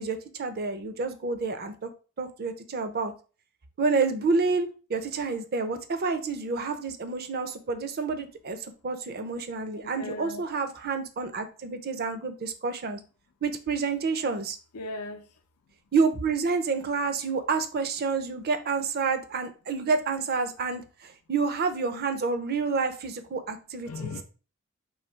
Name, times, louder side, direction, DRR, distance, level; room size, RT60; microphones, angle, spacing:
voice 1, 0.0-1.9 2.2-3.1 3.8-13.0 13.4-14.6 15.9-24.1, right 4 dB, 45° right, 0.5 m, -29 dB
voice 2, 9.7-10.4 14.7-15.2 23.8-24.2, left 3 dB, 90° left, 0.5 m, -37 dB
3.2 x 2.7 x 4.4 m
head